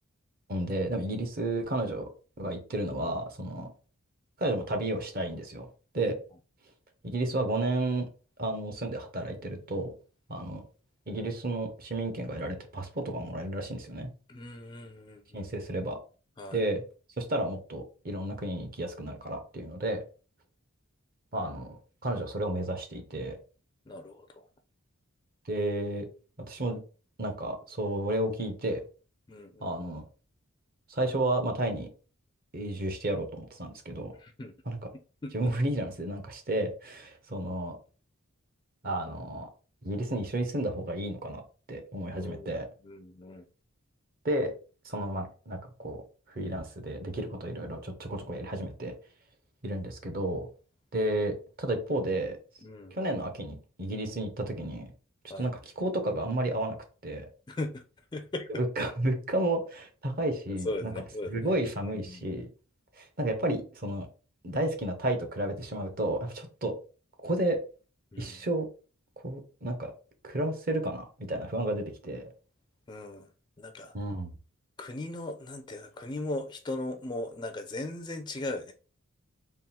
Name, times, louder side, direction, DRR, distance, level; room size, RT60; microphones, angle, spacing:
voice 1, 0.5-2.0 2.4-3.7 4.4-5.7 5.9-6.1 7.0-8.1 8.4-9.9 10.3-10.6 11.1-14.1 15.3-16.0 16.5-16.8 17.2-20.0 21.3-23.4 25.5-26.1 26.5-26.8 27.2-28.8 29.6-30.0 30.9-31.9 32.5-34.1 34.7-34.8 35.3-37.8 38.8-39.5 39.8-41.4 41.7-42.7 44.2-44.5 44.8-46.0 46.3-48.9 49.6-50.4 50.9-52.4 52.9-54.9 55.4-56.8 57.0-57.3 58.5-60.9 61.3-62.5 62.9-64.1 64.4-66.7 67.2-67.6 68.2-68.7 69.2-69.9 70.2-72.3 73.9-74.3, right 1 dB, 40° right, 6 dB, 0.8 m, -32 dB
voice 2, 14.3-15.5 16.4-16.6 23.9-24.3 29.3-29.8 34.2-34.5 35.2-35.5 42.1-42.6 42.8-43.4 52.6-52.9 55.3-55.5 57.5-57.8 58.1-58.6 60.6-61.5 61.8-62.3 68.1-68.4 72.9-73.3 73.6-73.9 74.8-78.7, left 2 dB, 20° left, 7 dB, 0.3 m, -38 dB
3.7 x 2.3 x 4.0 m, 0.36 s
head